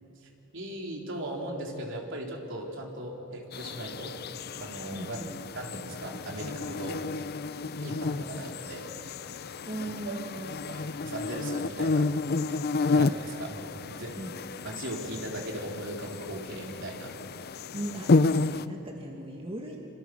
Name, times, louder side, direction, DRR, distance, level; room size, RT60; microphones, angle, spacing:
voice 1, 0.5-4.2 4.6-5.2 5.5-7.0 7.8-8.9 9.8-10.2 10.7-12.1 12.9-14.2 14.6-17.1, right 1 dB, 65° right, 0 dB, 3.8 m, -38 dB
sound 1, 3.5-18.7, left 3 dB, 50° left, 0.6 m, -31 dB
voice 2, 4.9-5.4 9.7-10.7 14.2-14.4 17.7-19.8, right 1 dB, 25° right, 0 dB, 2.2 m, -38 dB
28.0 x 26.5 x 6.2 m, 2.8 s
head